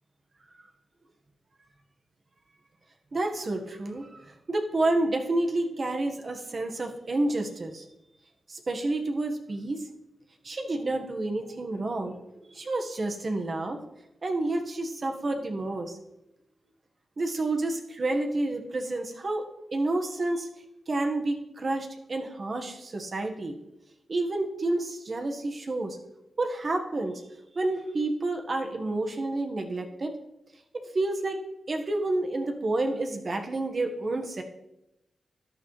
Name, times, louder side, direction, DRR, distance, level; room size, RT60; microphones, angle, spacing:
voice 1, 3.1-7.8 8.5-9.8 10.4-12.2 12.4-13.8 14.2-16.0 17.2-19.4 19.7-20.5 20.9-23.6 24.1-26.0 26.4-27.2 27.5-30.2 30.7-31.4 31.7-34.4, right 2 dB, 50° right, 3 dB, 1.5 m, -29 dB
13.5 x 10.0 x 3.3 m, 0.88 s
cardioid pair, 75°, 0 cm